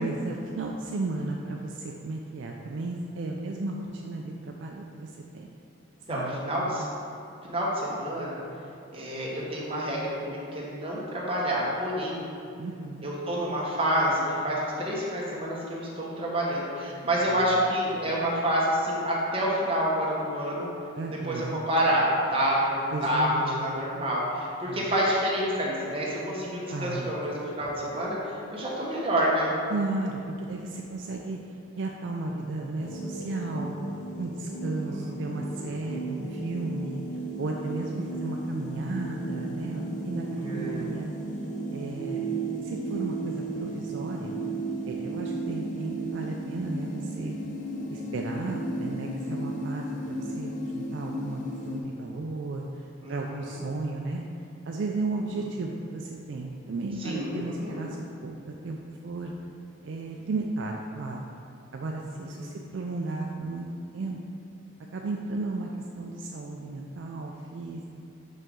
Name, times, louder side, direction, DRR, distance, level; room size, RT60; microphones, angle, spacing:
voice 1, 0.0-5.5 6.1-6.9 12.6-13.1 17.3-17.4 21.0-21.6 22.9-23.7 24.7-24.8 26.7-27.1 29.7-31.4 31.8-33.8 34.2-37.0 37.4-41.1 41.7-42.3 42.6-44.4 44.8-47.4 47.9-54.2 54.7-58.8 59.0-59.3 59.8-61.2 61.7-63.7 63.9-64.2 64.9-65.7 66.0-67.8, right 2 dB, 60° right, 0 dB, 0.4 m, -34 dB
voice 2, 6.1-6.9 7.4-8.4 8.9-12.3 13.0-20.7 21.1-29.5 34.8-35.1 38.0-38.1 40.4-40.9 53.0-53.6 57.0-57.8 62.2-62.5, equal, 30° right, -5 dB, 1.1 m, -28 dB
sound 1, 32.8-51.8, right 2 dB, 40° left, 0.5 m, -34 dB
5.3 x 5.2 x 3.7 m, 2.5 s
head